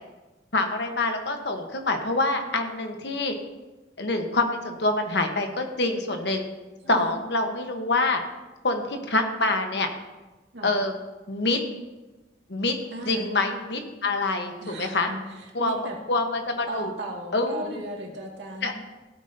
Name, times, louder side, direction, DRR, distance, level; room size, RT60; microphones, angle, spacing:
voice 1, 0.5-3.3 4.0-6.4 6.9-8.2 8.6-9.9 10.6-10.9 11.3-11.6 12.5-12.7 13.1-15.1 15.5-15.8 16.1-16.9 17.3-17.8 18.6-18.7, left 2 dB, 65° left, 5 dB, 1.3 m, -26 dB
voice 2, 6.8-7.1 10.5-10.7 12.9-13.3 14.6-16.0 16.7-18.7, right 1 dB, 70° right, -1 dB, 2.3 m, -37 dB
16.0 x 8.7 x 2.8 m, 1.1 s
head